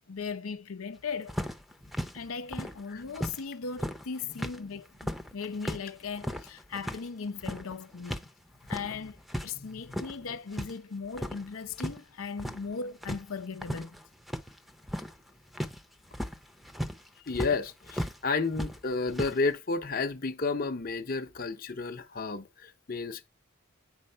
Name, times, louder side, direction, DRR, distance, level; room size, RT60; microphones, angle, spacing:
voice 1, 0.1-1.3 2.1-8.3 8.7-14.0 17.2-17.3, left 5 dB, 85° left, 0.6 m, -38 dB
sound 1, 1.3-3.4 3.7-8.3 8.5-9.5 9.8-10.7 11.0-12.0 12.2-12.7 13.0-18.2 18.5-19.4, equal, ahead, 0.7 m, -36 dB
voice 2, 17.3-23.3, left 4 dB, 45° left, 0.7 m, -31 dB
8.8 x 4.2 x 5.5 m
head